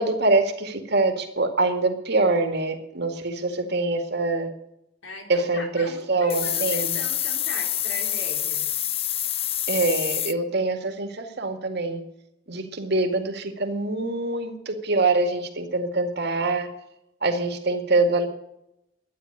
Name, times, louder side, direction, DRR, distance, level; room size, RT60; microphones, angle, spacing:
voice 1, 0.0-4.5 5.3-7.0 9.7-12.0 12.5-16.7 17.2-18.3, right 2 dB, 60° right, 6 dB, 2.2 m, -24 dB
voice 2, 5.0-8.7, left 2 dB, 85° left, 2 dB, 3.8 m, -39 dB
sound 1, 6.3-10.3, left 11 dB, 30° left, 0.4 m, -27 dB
12.5 x 9.7 x 9.8 m, 0.83 s
head